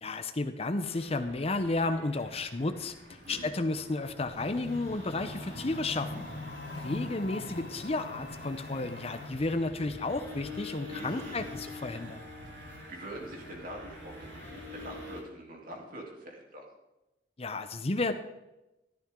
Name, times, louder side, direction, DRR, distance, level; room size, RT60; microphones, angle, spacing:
voice 1, 0.0-2.9 3.3-6.3 6.8-12.2 17.4-18.1, left 2 dB, 35° left, 9 dB, 0.7 m, -32 dB
sound 1, 0.9-15.2, left 2 dB, 75° right, 3.4 m, -46 dB
voice 2, 3.1-3.4 10.9-11.4 12.6-16.6, right 1 dB, 50° right, -1 dB, 3.2 m, -44 dB
sound 2, 4.3-9.3, left 2 dB, 65° left, 2.6 m, -42 dB
14.5 x 13.0 x 3.8 m, 0.96 s
head